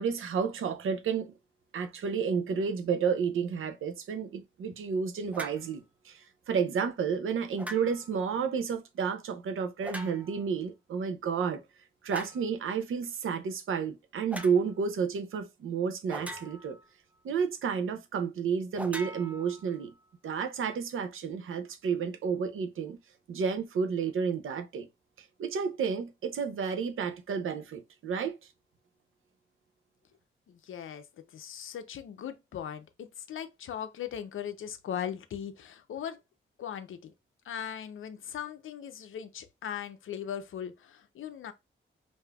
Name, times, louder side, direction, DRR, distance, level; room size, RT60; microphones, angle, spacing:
voice 1, 0.0-1.3 1.7-11.6 12.0-16.8 17.2-19.9 20.2-23.0 23.3-24.9 25.4-28.4, right 6 dB, 75° right, 0.7 m, -31 dB
sound 1, 5.3-5.7 7.6-8.2 9.8-10.5 12.1-12.5 14.3-14.6 16.1-16.8 18.7-19.9, right 1 dB, 5° right, 0.5 m, -41 dB
voice 2, 30.5-31.1 31.3-36.2 36.6-37.1 37.4-41.5, left 9 dB, 75° left, 0.6 m, -39 dB
4.9 x 2.6 x 2.3 m
wide cardioid pair, 120°, 21 cm